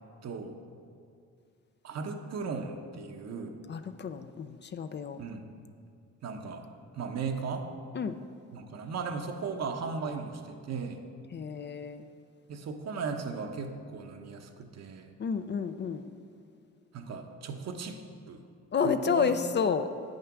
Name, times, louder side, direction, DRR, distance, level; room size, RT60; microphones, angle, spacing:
voice 1, 0.2-0.6 1.8-3.6 5.2-5.5 6.2-6.7 6.9-7.7 8.5-11.0 12.5-15.1 16.9-18.0 18.3-18.4 18.8-19.4, right 5 dB, 60° right, 5 dB, 1.0 m, -37 dB
voice 2, 3.7-5.2 7.9-8.2 11.3-12.0 15.2-16.1 18.7-19.9, left 6 dB, 35° left, 10 dB, 0.5 m, -30 dB
8.5 x 6.6 x 6.0 m, 2.4 s
cardioid pair, 90°, 30 cm